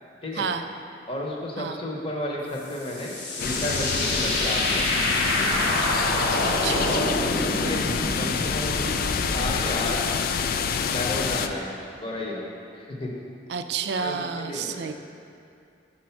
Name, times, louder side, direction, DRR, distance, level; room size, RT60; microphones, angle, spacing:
voice 1, 1.1-4.9 5.4-5.6 6.8-7.8 8.2-8.9 9.3-10.0 10.8-12.4 12.7-13.1 13.9-14.9, left 1 dB, 30° left, -2 dB, 0.9 m, -32 dB
sound 1, 2.5-9.7, left 1 dB, 80° left, 1.3 m, -28 dB
sound 2, 3.4-11.5, left 6 dB, 55° left, 0.3 m, -27 dB
voice 2, 6.4-7.1 13.5-14.9, right 6 dB, 70° right, 8 dB, 0.4 m, -30 dB
6.2 x 4.4 x 5.8 m, 2.5 s
head